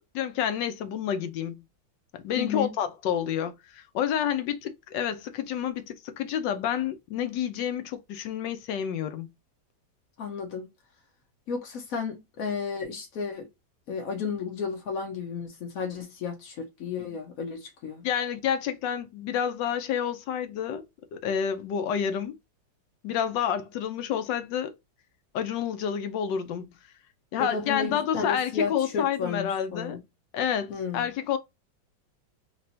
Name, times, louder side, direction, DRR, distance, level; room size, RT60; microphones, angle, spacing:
voice 1, 0.1-1.6 2.2-9.3 17.0-17.1 18.0-20.8 21.1-22.4 23.0-24.7 25.3-26.7 27.3-30.0 30.3-31.4, left 9 dB, 80° left, 1.3 m, -29 dB
voice 2, 2.4-2.8 10.2-10.7 11.5-13.5 13.9-18.0 27.4-30.0 30.7-31.1, left 5 dB, 60° left, 1.0 m, -33 dB
3.3 x 2.9 x 2.6 m
omnidirectional pair, 2.0 m